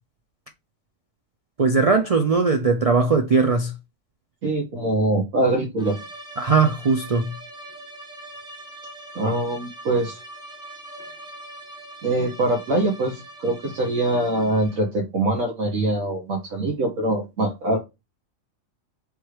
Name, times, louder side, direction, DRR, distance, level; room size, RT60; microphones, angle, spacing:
voice 1, 1.6-3.7 6.4-7.3, right 4 dB, 60° right, 0.3 m, -19 dB
voice 2, 4.4-6.0 9.1-10.2 12.0-17.8, right 2 dB, 75° right, 1.4 m, -23 dB
sound 1, 5.8-15.0, right 1 dB, 5° right, 0.6 m, -42 dB
3.6 x 3.1 x 4.7 m
omnidirectional pair, 1.4 m